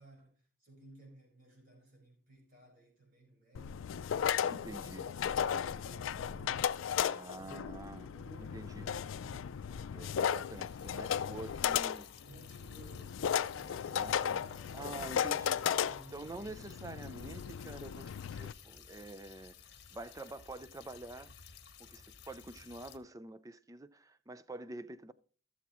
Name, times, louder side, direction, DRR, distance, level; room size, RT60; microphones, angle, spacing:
voice 1, 0.0-6.8 7.1-9.6 12.2-14.8 15.1-16.2, right 2 dB, 45° right, 4.7 m, -58 dB
sound 1, 3.5-18.5, left 8 dB, 85° left, 0.4 m, -35 dB
voice 2, 4.5-5.1 7.1-8.1 8.5-8.9 9.7-12.1 13.6-14.4 14.7-15.8 16.1-21.3 21.8-25.1, right 2 dB, 15° right, 0.4 m, -47 dB
sound 2, 10.1-23.0, left 7 dB, 60° left, 1.2 m, -56 dB
16.5 x 7.2 x 3.0 m
head